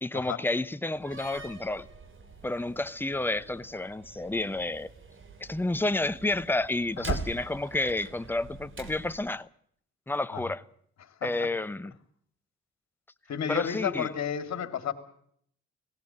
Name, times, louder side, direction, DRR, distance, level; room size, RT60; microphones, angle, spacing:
voice 1, 0.0-1.9 2.4-4.9 5.4-9.5 10.1-10.6 11.2-11.9 13.5-14.1, left 2 dB, 5° left, 0.8 m, -30 dB
Slam, 0.9-9.3, right 5 dB, 40° right, 2.7 m, -43 dB
voice 2, 13.3-14.9, left 8 dB, 60° left, 2.7 m, -31 dB
18.5 x 16.5 x 8.9 m
cardioid pair, 90°, 30 cm